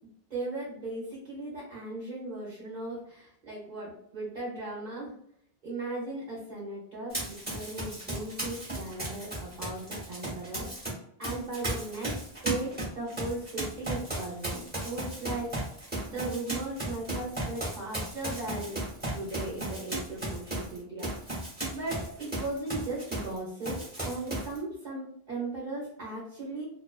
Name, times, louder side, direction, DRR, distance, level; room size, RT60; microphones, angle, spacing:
voice 1, 0.3-5.1 5.6-15.5 16.0-18.8 19.1-26.6, right 2 dB, 50° right, -6 dB, 0.8 m, -37 dB
Run, 7.1-10.9 11.2-23.4 23.6-24.6, right 1 dB, 10° right, 0.8 m, -35 dB
2.3 x 2.2 x 2.4 m, 0.69 s
omnidirectional pair, 1.1 m